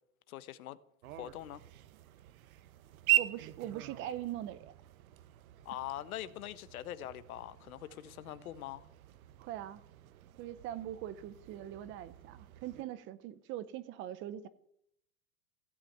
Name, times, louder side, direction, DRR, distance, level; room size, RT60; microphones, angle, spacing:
voice 1, 0.3-0.8 1.2-1.6 5.6-8.8, left 13 dB, 75° left, 1.3 m, -43 dB
sound 1, 1.0-12.8, right 13 dB, 75° right, 1.2 m, -40 dB
voice 2, 3.2-4.7 9.4-9.8 10.4-14.5, right 12 dB, 30° right, 0.8 m, -42 dB
16.0 x 8.9 x 9.0 m
supercardioid pair, 155°, 42 cm